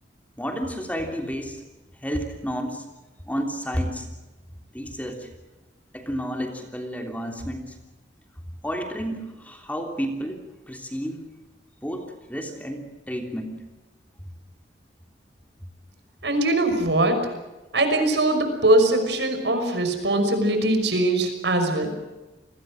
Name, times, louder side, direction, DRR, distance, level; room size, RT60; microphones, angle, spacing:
voice 1, 0.4-1.6 2.0-2.8 3.3-4.1 4.7-5.3 5.9-7.8 8.6-11.2 11.8-13.6, equal, 10° left, 4 dB, 3.2 m, -31 dB
voice 2, 16.2-17.3 17.7-21.9, right 1 dB, 75° right, 7 dB, 5.9 m, -21 dB
29.5 x 21.0 x 6.5 m, 1.1 s
head